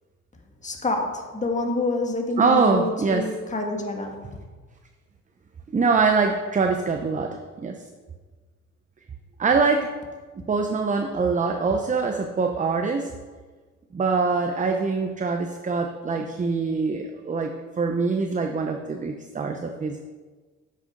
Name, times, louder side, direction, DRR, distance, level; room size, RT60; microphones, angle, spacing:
voice 1, 0.6-4.3, left 2 dB, 25° left, 2 dB, 1.6 m, -27 dB
voice 2, 2.4-3.2 5.7-7.8 9.4-9.9 10.5-13.1 13.9-20.0, right 4 dB, 25° right, 4 dB, 0.7 m, -24 dB
7.8 x 6.6 x 5.1 m, 1.4 s
cardioid pair, 90°, 30 cm